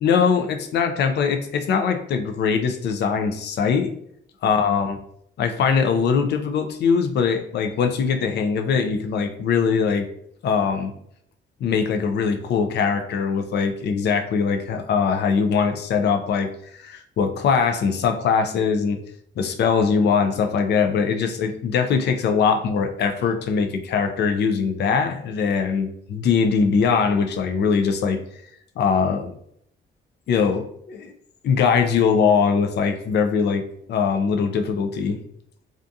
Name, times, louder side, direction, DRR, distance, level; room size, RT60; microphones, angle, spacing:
voice 1, 0.0-3.9 4.4-5.0 5.4-10.1 10.4-10.9 11.6-19.0 19.4-28.2 28.8-29.3 30.3-31.1 31.4-33.6 33.9-35.2, left 6 dB, 60° left, 6 dB, 0.4 m, -21 dB
2.4 x 2.3 x 2.6 m, 0.69 s
cardioid pair, 90°, 20 cm